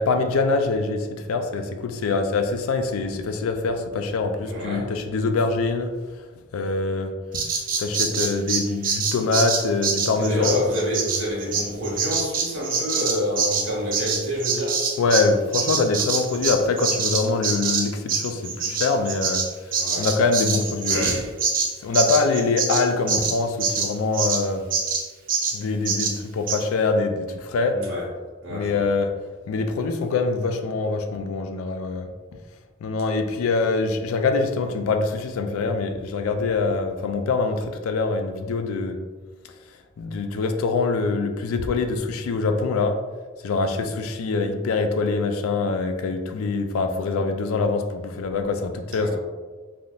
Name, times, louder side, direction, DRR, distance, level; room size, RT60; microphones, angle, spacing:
voice 1, 0.0-5.9 6.5-7.1 7.8-10.6 15.0-19.4 20.0-21.2 21.8-24.6 25.5-27.8 28.5-29.1 29.5-32.1 32.8-39.0 40.0-43.0 43.4-49.2, left 3 dB, 90° left, 6 dB, 0.4 m, -24 dB
voice 2, 4.4-4.9 10.2-14.8 19.8-20.1 20.9-21.3 27.7-28.1 28.4-28.9 48.9-49.2, left 1 dB, 70° right, -5 dB, 1.2 m, -28 dB
Bird vocalization bird call bird song, 7.3-15.3 15.5-24.4 24.7-25.0 25.3-25.6 25.9-26.1 26.5-26.6, right 5 dB, 45° right, 0.5 m, -25 dB
3.5 x 2.6 x 2.3 m, 1.4 s
head